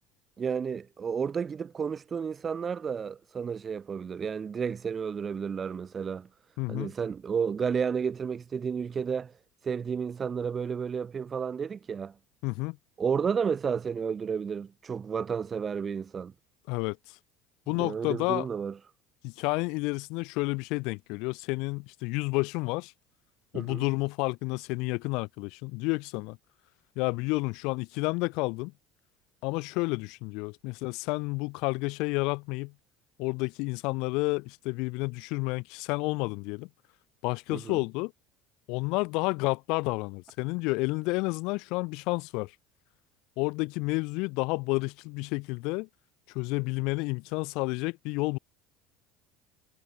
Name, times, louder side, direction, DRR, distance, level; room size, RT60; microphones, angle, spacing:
voice 1, 0.4-6.3 6.7-9.3 9.6-12.1 13.0-16.3 17.7-18.8 23.5-23.8 37.5-37.8, right 6 dB, 35° right, 5.7 m, -32 dB
voice 2, 6.6-6.9 12.4-12.8 16.7-17.0 17.7-18.5 19.2-22.9 23.5-26.4 27.0-28.7 29.4-32.7 33.2-36.7 37.2-38.1 38.7-42.5 43.4-45.9 46.3-48.4, left 27 dB, 75° left, 2.1 m, -30 dB
supercardioid pair, 90°, 0 cm